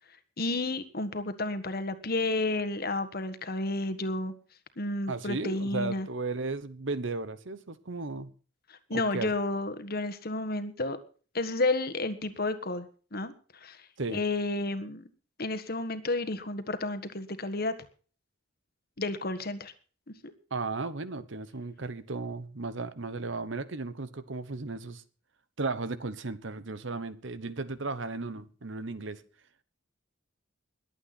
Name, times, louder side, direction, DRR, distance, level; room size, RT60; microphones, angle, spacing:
voice 1, 0.4-4.3 4.8-6.1 8.7-11.0 11.3-12.9 13.1-15.1 15.4-17.7 19.0-19.7 20.2-20.3, left 2 dB, 50° left, 10 dB, 1.5 m, -31 dB
voice 2, 5.1-8.3 8.9-9.3 14.0-14.2 20.5-25.0 25.6-29.2, right 3 dB, 65° right, 14 dB, 1.0 m, -35 dB
21.5 x 8.6 x 4.3 m, 0.39 s
head